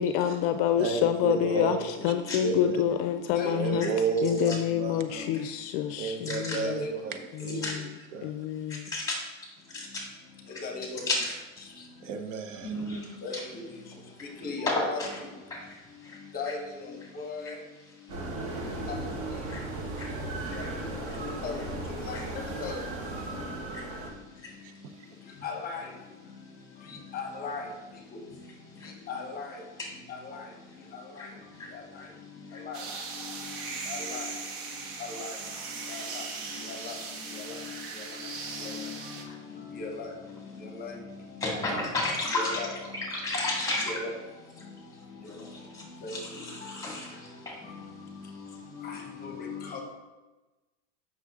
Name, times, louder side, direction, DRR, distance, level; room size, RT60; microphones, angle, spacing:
voice 1, 0.0-1.8 2.0-3.9 4.2-6.8 7.4-7.9 8.2-8.9, left 10 dB, 55° left, 8 dB, 0.5 m, -27 dB
voice 2, 0.8-2.1 2.4-2.8 3.4-5.3 6.0-7.2 7.4-8.4 12.0-13.0 24.6-25.1, right 5 dB, 80° right, 7 dB, 1.0 m, -33 dB
voice 3, 3.3-3.8 4.7-5.5 5.8-5.9 6.5-7.0 10.5-11.0 13.2-13.6 14.2-15.3 16.3-17.6 18.8-19.0 20.5-22.8 23.1-23.5 25.4-25.9 26.8-27.7 28.1-28.2 28.8-29.6 30.1-30.5 30.9-31.3 31.7-32.1 32.5-32.8 33.1-34.4 35.0-35.4 35.8-36.3 36.5-41.8 42.3-43.2 43.8-44.2 45.1-45.5 46.0-46.8 47.3-49.8, left 4 dB, 25° left, 2 dB, 1.0 m, -39 dB
voice 4, 6.3-6.6 7.6-7.7 8.7-9.2 9.7-10.0 11.1-11.3 12.6-13.4 14.7-15.1 15.7-16.2 19.5-19.6 20.0-20.1 20.6-20.7 22.1-22.2 23.7-23.8 25.3-25.4 26.9-27.0 28.8-28.9 31.2-31.3 31.6-31.7 32.5-32.6 41.4-42.6 43.1-43.9 45.2-47.6, left 2 dB, 10° left, -2 dB, 2.0 m, -32 dB
sound 1, 18.1-24.1, right 2 dB, 35° right, 1.3 m, -36 dB
sound 2, 32.7-39.2, right 4 dB, 55° right, 1.3 m, -39 dB
7.6 x 6.1 x 3.6 m, 1.2 s
supercardioid pair, 155°, 36 cm